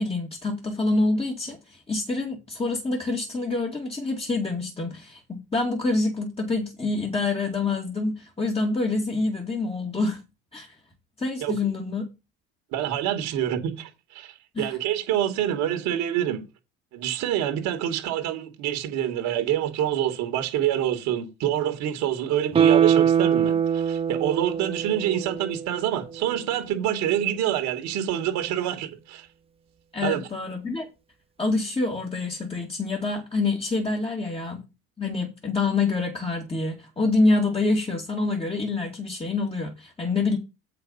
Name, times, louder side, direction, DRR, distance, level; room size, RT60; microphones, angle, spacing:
voice 1, 0.0-10.2 10.5-10.7 11.2-12.1 14.5-14.8 29.9-30.9 31.4-34.6 35.0-40.4, left 3 dB, 20° left, 2.4 m, -26 dB
voice 2, 12.7-16.4 16.9-29.3 30.0-30.3, right 11 dB, 70° right, 2.2 m, -26 dB
Guitar, 22.5-25.8 26.2-26.3, right 8 dB, 20° right, 0.5 m, -22 dB
7.6 x 5.9 x 5.6 m
supercardioid pair, 80°, 30 cm